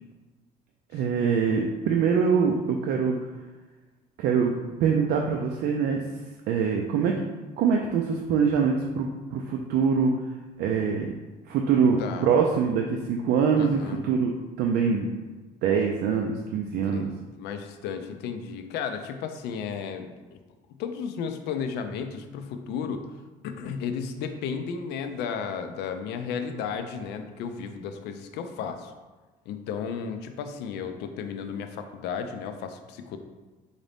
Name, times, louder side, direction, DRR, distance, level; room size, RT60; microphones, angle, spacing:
voice 1, 0.9-3.2 4.2-4.5 4.8-6.0 6.5-7.1 7.6-10.1 10.6-11.1 11.5-14.3 14.6-15.1 15.6-17.1, right 6 dB, 75° right, 1 dB, 0.4 m, -24 dB
voice 2, 12.0-12.3 13.6-14.0 16.8-20.4 20.8-23.0 23.4-28.9 29.5-33.2, left 6 dB, 80° left, 7 dB, 0.4 m, -34 dB
3.9 x 2.6 x 3.3 m, 1.2 s
cardioid pair, 110°, 17 cm